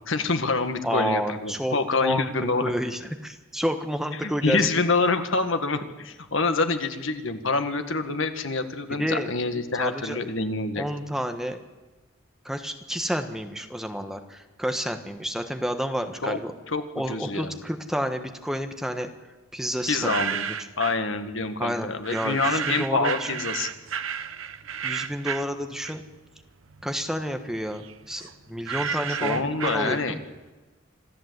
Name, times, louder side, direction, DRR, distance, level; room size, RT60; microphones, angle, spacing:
voice 1, 0.1-2.7 4.2-10.8 16.2-16.4 16.7-16.8 17.1-17.5 19.9-20.4 20.8-23.7 28.9-30.2, left 3 dB, 70° left, 8 dB, 1.6 m, -26 dB
voice 2, 0.8-2.3 2.6-4.7 9.0-9.3 9.8-10.2 10.8-11.6 12.4-16.5 16.9-19.1 19.5-20.2 21.6-23.3 24.8-26.0 26.8-30.2, equal, ahead, 6 dB, 1.2 m, -30 dB
sound 1, 19.8-21.1 22.0-26.3 26.6-30.4, right 7 dB, 80° right, 1.0 m, -32 dB
26.5 x 13.5 x 8.0 m, 1.2 s
head